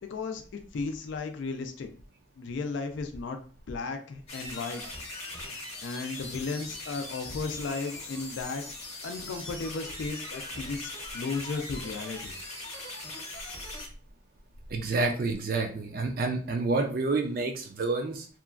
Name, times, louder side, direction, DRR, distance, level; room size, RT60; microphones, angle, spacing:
voice 1, 0.0-1.9 2.4-3.4 3.7-4.8 5.5-8.6 9.0-12.3, left 4 dB, 75° left, 6 dB, 0.4 m, -35 dB
sound 1, 4.3-13.9, left 2 dB, 35° left, 0.8 m, -40 dB
voice 2, 14.7-18.3, right 3 dB, 50° right, 4 dB, 0.3 m, -28 dB
2.9 x 2.3 x 2.3 m, 0.41 s
head